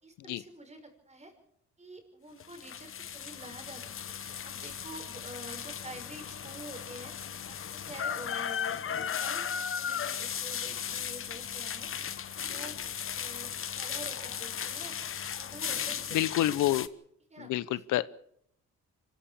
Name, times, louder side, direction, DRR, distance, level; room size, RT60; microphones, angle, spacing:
voice 1, 0.0-1.3 1.8-9.4 9.8-12.8 13.2-15.0 15.4-16.6 17.3-17.8, right 1 dB, 20° right, 6 dB, 5.9 m, -48 dB
sound 1, 2.4-16.9, left 8 dB, 45° left, 1.0 m, -36 dB
voice 2, 16.1-16.9 17.5-18.1, left 14 dB, 80° left, 17 dB, 0.8 m, -28 dB
25.5 x 14.5 x 7.3 m, 0.70 s
cardioid pair, 90°, 30 cm